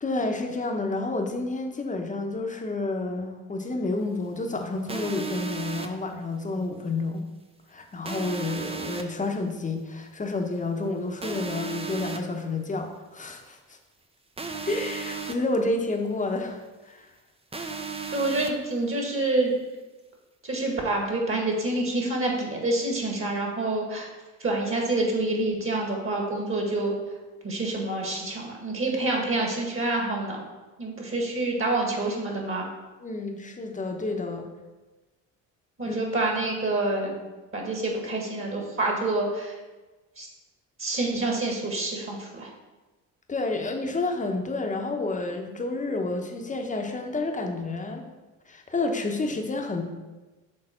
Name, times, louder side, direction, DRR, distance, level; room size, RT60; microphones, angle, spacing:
voice 1, 0.0-7.2 7.7-13.8 14.6-17.1 17.5-17.7 33.0-34.5 35.9-36.0 43.3-48.1 48.5-49.8, left 2 dB, 20° left, 3 dB, 0.9 m, -30 dB
sound 1, 4.9-5.9 8.0-9.0 11.2-12.2 14.4-15.3 17.5-18.5, right 5 dB, 15° right, 0.6 m, -34 dB
voice 2, 18.1-19.5 20.4-24.1 24.4-26.9 27.4-30.4 30.8-32.7 35.8-37.2 37.5-39.6 40.2-40.3 40.8-42.5, right 2 dB, 35° right, 0 dB, 1.7 m, -27 dB
6.7 x 3.3 x 4.4 m, 1.2 s
supercardioid pair, 70°, 37 cm